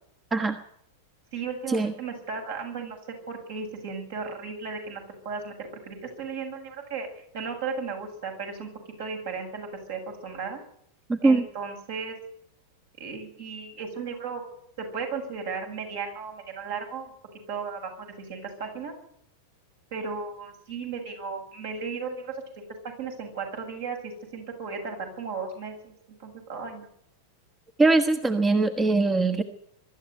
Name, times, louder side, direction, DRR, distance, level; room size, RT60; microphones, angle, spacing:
voice 1, 1.3-3.0 3.3-7.1 7.3-8.7 9.0-10.6 11.2-12.2 13.0-14.4 14.8-17.1 17.5-18.9 19.9-22.6 23.0-25.9 26.2-26.9, right 5 dB, 55° right, 3 dB, 7.7 m, -35 dB
voice 2, 11.1-11.4 27.8-29.4, right 3 dB, 15° right, 8 dB, 1.4 m, -21 dB
23.0 x 13.0 x 9.4 m, 0.71 s
figure-of-eight pair, 90°, 0 cm